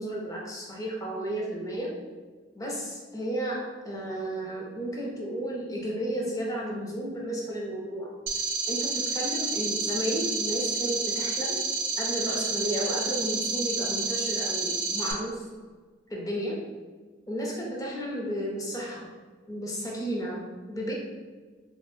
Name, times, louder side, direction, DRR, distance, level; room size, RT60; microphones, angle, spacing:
voice 1, 0.0-1.9 2.5-8.1 8.7-11.6 12.0-15.5 16.1-16.6 17.3-19.1 19.5-20.9, right 1 dB, 20° left, -3 dB, 0.5 m, -33 dB
sound 1, 8.3-15.1, right 4 dB, 70° right, 0.4 m, -29 dB
2.9 x 2.1 x 3.0 m, 1.5 s
head